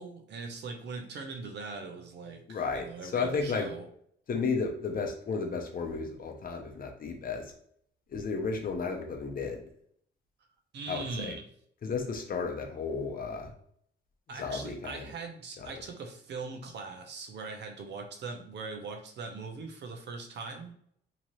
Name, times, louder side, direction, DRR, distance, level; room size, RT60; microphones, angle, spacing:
voice 1, 0.0-3.9 10.7-11.4 14.3-20.7, right 4 dB, 60° right, 5 dB, 0.7 m, -41 dB
voice 2, 2.5-3.7 4.3-7.5 8.1-9.6 10.9-11.4 11.8-13.5 14.3-15.1 15.6-15.7, left 4 dB, 45° left, 3 dB, 0.7 m, -33 dB
3.0 x 2.5 x 3.0 m, 0.66 s
cardioid pair, 90°, 20 cm